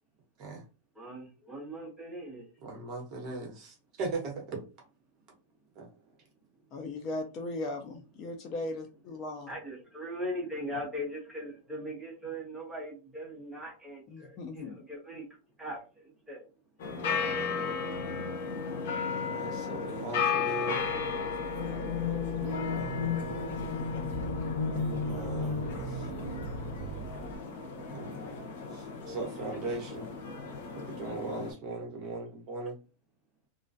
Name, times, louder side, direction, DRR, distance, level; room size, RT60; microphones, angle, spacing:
voice 1, 0.9-2.5 9.5-15.3 15.6-16.5 17.2-17.8, equal, 5° right, -2 dB, 0.7 m, -40 dB
voice 2, 2.6-4.6 5.8-5.9 19.0-20.8 25.1-26.0 27.9-28.1 28.7-30.1 30.7-32.7, right 3 dB, 30° right, 1 dB, 0.9 m, -38 dB
voice 3, 6.7-9.5 14.1-14.8, left 2 dB, 30° left, 4 dB, 0.3 m, -38 dB
sound 1, 16.8-31.5, left 5 dB, 65° left, 0.6 m, -35 dB
sound 2, 21.4-27.4, left 5 dB, 85° left, 1.1 m, -35 dB
sound 3, 22.4-23.1 24.1-24.4 24.8-27.1, right 5 dB, 50° right, 0.4 m, -41 dB
2.3 x 2.1 x 2.5 m, 0.32 s
supercardioid pair, 170°, 0 cm